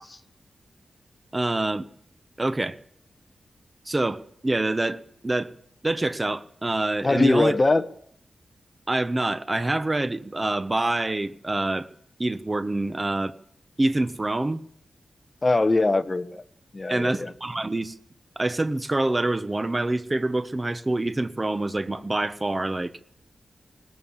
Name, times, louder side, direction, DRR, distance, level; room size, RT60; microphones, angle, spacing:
voice 1, 1.3-1.9 2.4-2.8 3.9-5.5 5.8-7.5 8.9-11.9 12.2-13.3 13.8-14.6 16.9-17.9 18.4-22.9, right 2 dB, 20° right, 1.1 m, -26 dB
voice 2, 7.0-7.9 15.4-16.4 16.7-17.3, left 2 dB, 30° left, 1.3 m, -22 dB
20.5 x 18.5 x 7.3 m
wide cardioid pair, 110°, 0 cm